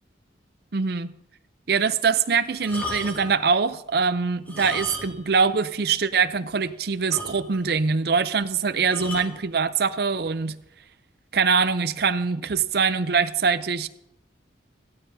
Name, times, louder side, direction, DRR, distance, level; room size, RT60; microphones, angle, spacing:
voice 1, 0.7-1.2 1.7-10.6 11.3-13.9, right 5 dB, 55° right, 0.5 m, -23 dB
sound 1, 2.6-3.4 4.4-5.4 5.6-5.8 6.3-6.4 6.6-6.7 7.1-7.8 8.9-9.4 10.2-10.5, left 1 dB, 10° left, 1.8 m, -35 dB
16.5 x 13.0 x 2.7 m
head